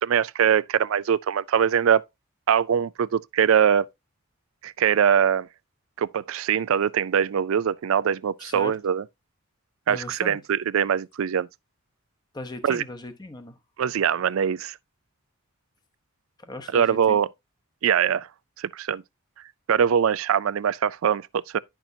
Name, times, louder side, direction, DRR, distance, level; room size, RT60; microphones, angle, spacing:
voice 1, 0.0-2.0 2.5-3.9 4.6-5.5 6.0-9.0 9.9-11.5 12.6-12.8 13.8-14.7 16.7-17.3 17.8-18.3 18.6-19.0 19.7-21.6, right 8 dB, 70° right, 0.4 m, -22 dB
voice 2, 8.4-8.8 9.9-10.4 12.3-13.6 16.4-17.2, left 1 dB, 20° left, 0.8 m, -38 dB
10.5 x 6.0 x 2.7 m
head